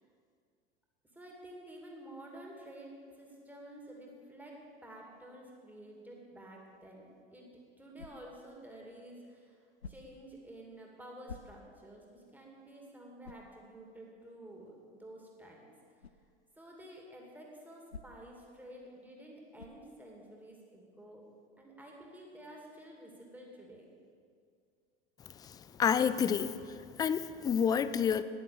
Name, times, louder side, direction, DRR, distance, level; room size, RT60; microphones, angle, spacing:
voice 1, 1.1-15.6 16.6-21.2 21.6-23.9, right 1 dB, 5° right, -2 dB, 2.6 m, -51 dB
sound 1, 7.9-8.5 9.8-10.3 11.2-11.9 12.4-12.5 13.2-13.6 16.0-16.2 17.9-18.4 19.6-19.9, left 5 dB, 85° left, 0.6 m, -49 dB
voice 2, 25.4-28.2, left 7 dB, 15° left, 14 dB, 0.3 m, -30 dB
10.0 x 9.8 x 7.0 m, 2.2 s
figure-of-eight pair, 75°, 31 cm